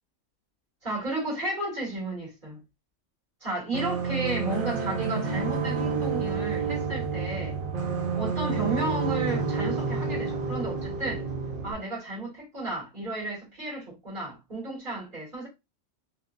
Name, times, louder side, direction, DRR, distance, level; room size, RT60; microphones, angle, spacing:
voice 1, 0.8-2.6 3.4-7.6 8.2-11.2 11.6-15.5, right 2 dB, 40° right, 1.9 m, -33 dB
sound 1, 3.7-11.7, right 5 dB, 55° right, 0.7 m, -29 dB
3.3 x 2.3 x 2.4 m
omnidirectional pair, 1.3 m